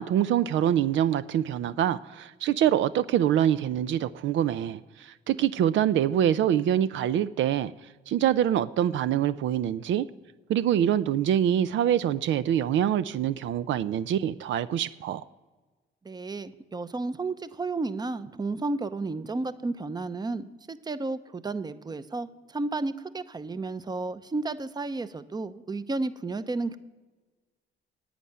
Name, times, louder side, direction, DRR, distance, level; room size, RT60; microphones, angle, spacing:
voice 1, 0.0-7.7 8.1-10.1 10.5-15.2, right 10 dB, 75° right, 14 dB, 0.5 m, -25 dB
voice 2, 16.0-26.8, right 3 dB, 20° right, 13 dB, 0.7 m, -32 dB
11.0 x 8.7 x 9.4 m, 1.3 s
cardioid pair, 90°, 20 cm